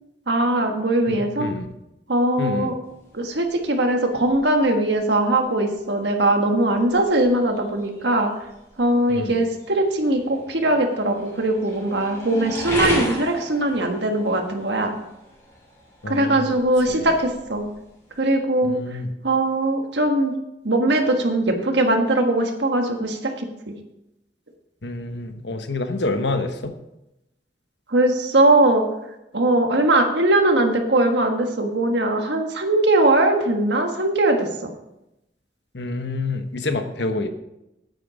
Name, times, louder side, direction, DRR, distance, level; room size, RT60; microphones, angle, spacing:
voice 1, 0.3-1.5 2.1-2.7 3.1-8.3 8.8-14.9 16.1-17.6 18.2-18.8 19.2-20.3 20.6-23.7 27.9-28.8 29.3-34.5, right 1 dB, 80° right, 4 dB, 1.5 m, -20 dB
voice 2, 1.1-1.7 2.4-2.7 9.1-9.5 16.0-16.6 16.9-17.1 18.6-19.1 24.8-26.8 35.7-37.3, left 2 dB, 80° left, 7 dB, 1.1 m, -28 dB
sound 1, 2.8-18.4, left 1 dB, 15° left, 3.2 m, -36 dB
9.3 x 9.3 x 5.0 m, 0.89 s
head